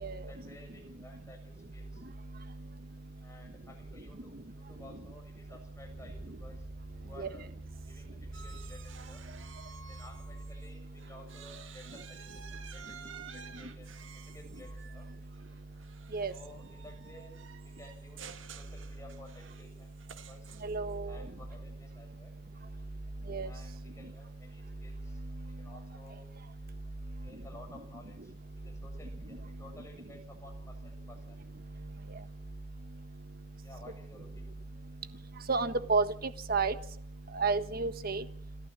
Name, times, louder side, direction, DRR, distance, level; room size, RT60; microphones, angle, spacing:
voice 1, 0.1-2.0 3.2-6.7 7.0-7.5 7.8-9.2 9.9-13.9 14.1-15.1 16.3-17.4 17.6-20.5 21.1-22.4 23.4-25.2 25.4-26.3 27.2-28.3 28.6-31.4 33.6-34.6, left 1 dB, 15° left, 3 dB, 7.3 m, -55 dB
sound 1, 4.5-10.8, right 2 dB, 80° left, 4.4 m, -52 dB
sound 2, 8.3-10.7 11.0-20.9, right 7 dB, 90° right, 1.9 m, -52 dB
voice 2, 20.6-21.1 23.3-23.5 35.5-36.1 36.5-36.7 37.3-38.2, right 4 dB, 50° right, 11 dB, 1.4 m, -30 dB
27.0 x 13.5 x 7.6 m, 0.63 s
head